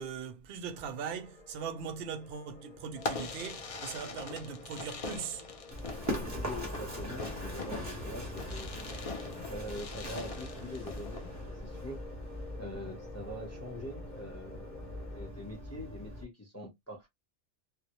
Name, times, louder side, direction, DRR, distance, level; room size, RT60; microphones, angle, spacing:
voice 1, 0.0-5.5, right 6 dB, 65° right, 0.7 m, -40 dB
sound 1, 0.7-15.3, left 4 dB, 45° left, 0.9 m, -52 dB
Fireworks, 3.0-11.3, left 3 dB, 65° left, 0.3 m, -42 dB
Run, 5.7-16.2, equal, 15° right, 0.7 m, -41 dB
voice 2, 6.3-8.7 9.5-12.0 12.6-17.1, left 1 dB, 20° left, 0.6 m, -44 dB
2.1 x 2.0 x 2.8 m
omnidirectional pair, 1.2 m